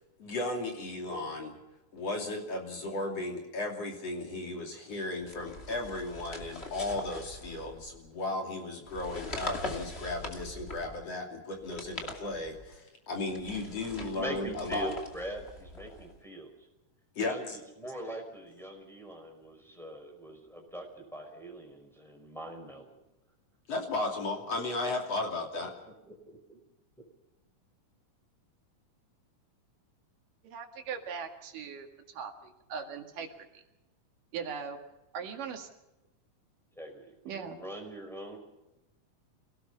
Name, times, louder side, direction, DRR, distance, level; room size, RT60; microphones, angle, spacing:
voice 1, 0.2-1.6 1.9-14.9 17.2-17.6 23.7-25.7, left 2 dB, 50° left, 2 dB, 3.7 m, -35 dB
sound 1, 5.2-8.0 8.8-11.1 11.6-12.7 13.3-16.2, left 2 dB, 20° left, 2.1 m, -42 dB
voice 2, 14.0-16.5 17.2-23.0 26.0-26.6 36.8-38.4, right 1 dB, ahead, 1 dB, 5.0 m, -42 dB
voice 3, 30.4-33.6 34.3-34.8 35.1-35.7 37.3-37.6, right 6 dB, 80° right, 4 dB, 3.6 m, -40 dB
27.0 x 17.5 x 5.6 m, 0.98 s
omnidirectional pair, 3.7 m